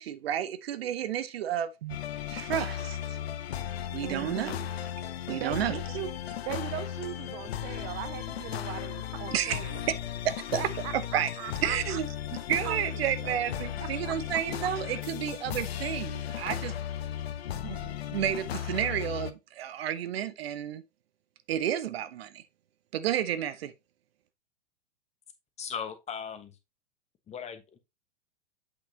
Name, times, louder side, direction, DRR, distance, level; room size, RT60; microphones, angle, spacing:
voice 1, 0.0-2.0 2.3-3.0 3.9-4.5 5.3-5.8 9.3-9.7 10.2-10.6 10.9-11.3 11.6-12.1 12.5-16.7 17.6-20.8 21.5-22.4 22.9-23.7, right 10 dB, 55° right, 0.9 m, -31 dB
sound 1, 1.9-19.3, left 10 dB, 60° left, 0.8 m, -36 dB
voice 2, 4.0-4.7 5.3-9.8 10.6-12.3 12.6-12.8 13.2-14.2 14.6-14.7, right 14 dB, 25° right, 0.4 m, -40 dB
voice 3, 25.6-26.6 27.3-27.8, left 7 dB, 20° left, 1.1 m, -38 dB
8.1 x 5.9 x 2.8 m
figure-of-eight pair, 105°, 35 cm